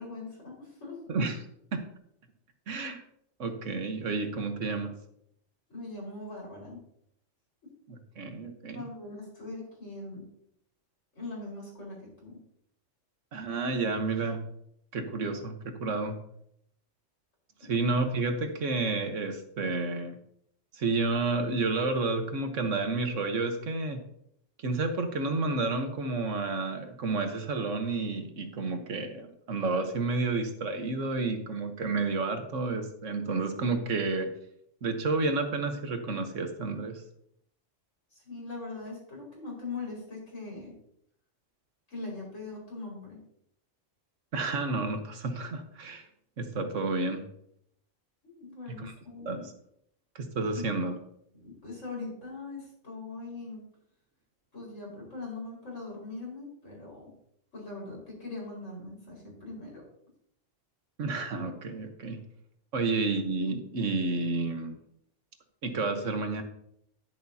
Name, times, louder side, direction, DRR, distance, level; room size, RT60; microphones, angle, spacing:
voice 1, 0.0-1.0 5.7-6.8 8.7-10.3 11.2-12.4 17.6-17.8 38.1-40.7 41.9-43.2 48.2-49.5 50.6-50.9 51.3-53.6 54.5-57.1 57.5-59.8, left 3 dB, 90° left, -3 dB, 5.4 m, -41 dB
voice 2, 1.1-1.4 1.7-1.8 2.7-3.0 3.4-4.9 7.9-8.8 13.3-14.4 14.9-16.2 17.6-20.2 20.7-24.0 24.6-34.3 34.8-37.0 44.3-46.1 46.4-47.2 48.8-48.9 49.2-49.5 50.1-51.0 61.0-62.2 62.7-64.8 65.6-66.4, right 3 dB, 85° right, 6 dB, 1.6 m, -30 dB
11.0 x 10.5 x 2.8 m, 0.73 s
omnidirectional pair, 1.3 m